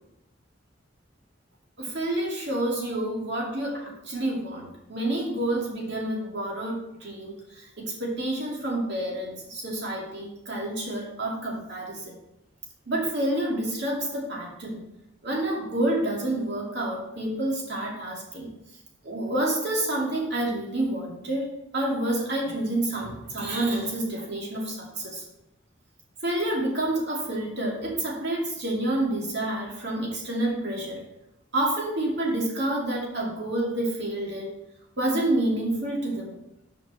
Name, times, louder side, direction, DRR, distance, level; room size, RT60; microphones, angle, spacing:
voice 1, 1.8-12.1 12.9-14.8 15.2-18.5 19.0-21.5 21.7-25.2 26.2-31.0 31.5-34.5 35.0-36.3, right 1 dB, 60° right, -2 dB, 2.4 m, -28 dB
6.2 x 5.2 x 6.4 m, 0.87 s
head